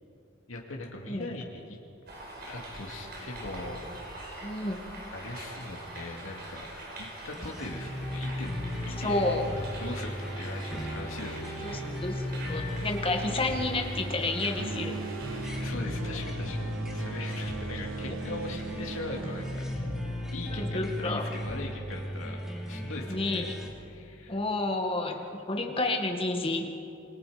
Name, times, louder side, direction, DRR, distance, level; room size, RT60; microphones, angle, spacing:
voice 1, 0.5-1.8 2.5-3.9 5.1-6.7 7.0-9.3 9.8-11.8 15.2-19.7 20.3-22.4 22.7-23.5 23.9-24.4, left 2 dB, 85° left, 0 dB, 2.4 m, -40 dB
sound 1, 2.1-15.6, right 1 dB, 50° right, 4.8 m, -44 dB
voice 2, 4.4-4.8 9.0-9.5 11.6-15.0 18.0-18.2 20.5-21.2 23.1-23.5 24.3-26.7, left 2 dB, 25° left, 3 dB, 1.9 m, -30 dB
sound 2, 7.3-23.7, equal, 5° right, 2.9 m, -36 dB
sound 3, 14.6-20.6, right 4 dB, 80° right, 0.8 m, -40 dB
27.5 x 22.0 x 5.2 m, 2.6 s
head